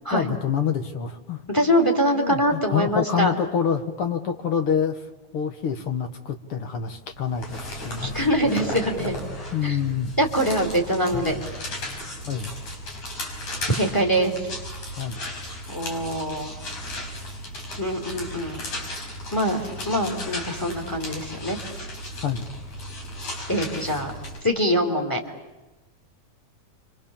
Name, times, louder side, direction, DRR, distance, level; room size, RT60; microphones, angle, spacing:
voice 1, 0.1-1.4 2.1-5.0 5.3-8.2 9.5-10.1 12.3-12.5 15.0-15.2 22.2-22.5, left 7 dB, 50° left, 6 dB, 2.3 m, -27 dB
voice 2, 1.5-3.3 8.0-9.2 9.6-9.8 10.2-11.4 13.7-14.5 15.7-16.5 17.8-18.6 19.3-21.6 23.5-24.1 24.4-25.2, equal, 5° left, 2 dB, 3.6 m, -24 dB
sound 1, 7.1-24.4, left 1 dB, 70° left, 6.7 m, -35 dB
30.0 x 25.5 x 7.3 m, 1.1 s
omnidirectional pair, 3.5 m